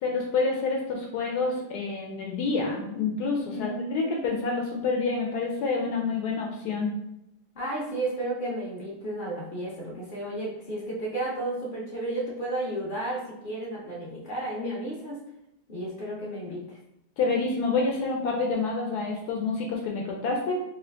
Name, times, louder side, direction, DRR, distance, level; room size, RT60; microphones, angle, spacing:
voice 1, 0.0-7.0 17.2-20.6, left 4 dB, 75° left, 0 dB, 1.1 m, -28 dB
voice 2, 3.4-4.3 7.5-15.2 15.7-16.8, right 1 dB, 45° left, -4 dB, 0.7 m, -33 dB
3.1 x 2.5 x 3.3 m, 0.84 s
omnidirectional pair, 1.8 m